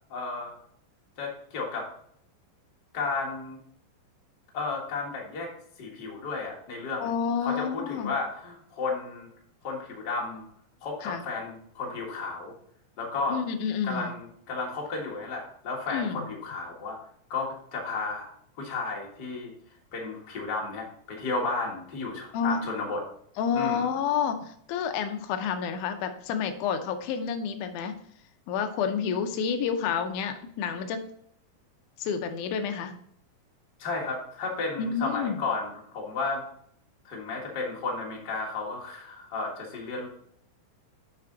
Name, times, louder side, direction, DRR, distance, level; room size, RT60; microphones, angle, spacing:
voice 1, 0.1-0.6 1.2-1.9 2.9-3.6 4.5-5.5 5.8-7.1 7.4-9.3 9.6-10.4 10.8-12.5 13.0-13.4 13.8-17.0 17.3-18.3 18.6-19.5 19.9-23.0 23.5-23.9 33.8-36.4 37.0-40.1, left 3 dB, 45° left, -2 dB, 1.4 m, -33 dB
voice 2, 7.0-8.1 11.0-11.2 13.3-14.1 15.9-16.3 22.3-22.6 23.4-27.9 28.5-31.0 32.0-32.9 34.8-35.4, left 7 dB, 80° left, 7 dB, 1.8 m, -29 dB
6.9 x 5.7 x 3.8 m, 0.66 s
omnidirectional pair, 4.3 m